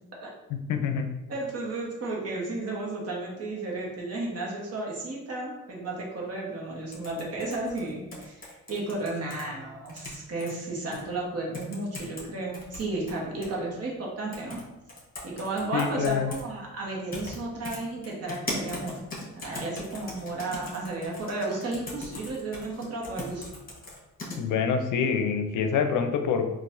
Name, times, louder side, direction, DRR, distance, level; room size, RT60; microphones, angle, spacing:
voice 1, 0.7-1.1 15.7-16.3 24.4-26.5, left 6 dB, 75° left, 6 dB, 0.5 m, -26 dB
voice 2, 1.3-14.6 15.2-19.0 19.3-23.5, right 2 dB, 50° right, -3 dB, 1.1 m, -33 dB
sound 1, 6.9-9.4 9.8-10.5 10.9-11.0 11.5-12.2 12.5-13.5 14.3-14.6 14.9-16.4 17.1-17.4 17.6-24.4, left 2 dB, 30° left, 1.2 m, -39 dB
3.9 x 2.4 x 2.6 m, 1.0 s
cardioid pair, 95°, 31 cm